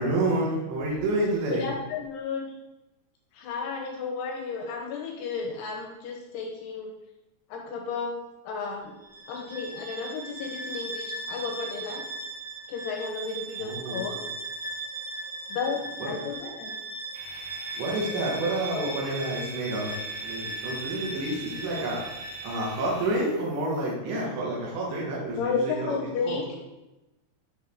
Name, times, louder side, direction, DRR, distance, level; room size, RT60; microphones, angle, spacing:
voice 1, 0.0-1.6 13.6-14.1 16.0-16.1 17.7-19.9 20.2-22.0 22.4-26.0 26.2-26.4, right 1 dB, 75° right, -4 dB, 3.3 m, -29 dB
voice 2, 1.5-2.5 3.3-6.9 7.5-8.2 8.4-8.9 9.3-12.0 12.7-14.2 15.5-16.8 25.4-26.5, left 5 dB, 80° left, 1 dB, 2.4 m, -33 dB
Bowed string instrument, 9.0-22.9, right 2 dB, 45° right, 0.7 m, -38 dB
sound 1, 17.1-23.9, right 3 dB, 60° right, 1.8 m, -46 dB
8.9 x 3.2 x 3.4 m, 1.0 s
omnidirectional pair, 5.2 m